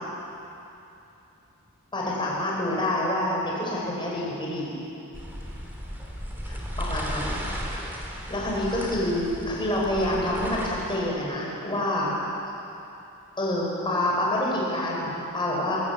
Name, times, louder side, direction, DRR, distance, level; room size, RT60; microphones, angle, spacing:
voice 1, 1.9-4.8 6.5-7.4 8.3-12.1 13.4-15.8, left 1 dB, 20° left, -4 dB, 5.5 m, -27 dB
sound 1, 5.1-11.0, equal, 10° right, 2.9 m, -35 dB
22.5 x 14.0 x 8.3 m, 2.9 s
head